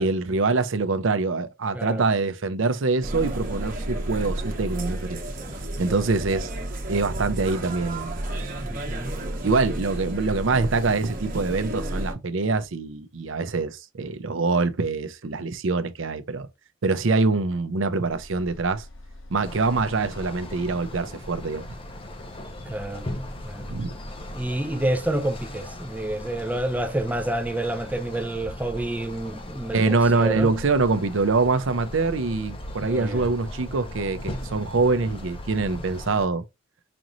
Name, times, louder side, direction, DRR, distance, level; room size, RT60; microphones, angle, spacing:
voice 1, 0.0-5.2 5.8-6.5 6.9-8.2 9.4-16.5 16.8-18.8 19.3-21.7 23.7-23.9 29.7-36.4, right 3 dB, 70° right, 0.6 m, -24 dB
sound 1, 3.0-12.1, right 1 dB, 45° right, 1.0 m, -32 dB
voice 2, 8.6-9.1 22.7-23.1 23.4-23.7 24.3-30.5 32.8-33.3, right 1 dB, 5° right, 0.4 m, -29 dB
sound 2, 18.1-36.0, left 1 dB, 70° left, 1.0 m, -45 dB
sound 3, 19.4-36.3, left 1 dB, 25° left, 0.7 m, -39 dB
5.1 x 3.0 x 2.5 m
head